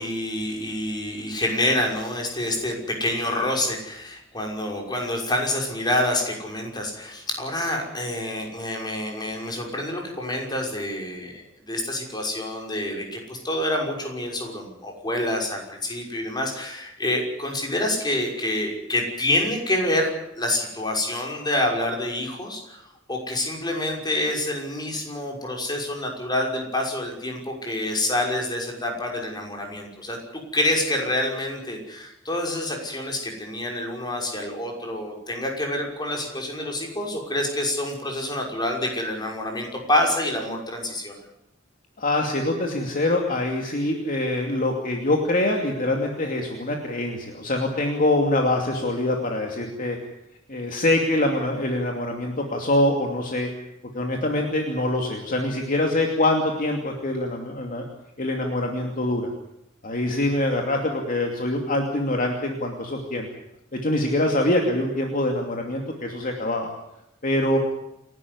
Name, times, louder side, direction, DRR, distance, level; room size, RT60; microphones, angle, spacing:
voice 1, 0.0-22.8 23.1-30.2 30.5-41.2, left 1 dB, 20° left, 1 dB, 6.0 m, -27 dB
voice 2, 42.0-50.0 50.5-53.5 53.9-57.9 58.2-59.3 59.8-63.3 63.8-66.7 67.2-67.6, left 1 dB, 45° left, 2 dB, 2.7 m, -24 dB
28.5 x 12.5 x 9.7 m, 0.85 s
head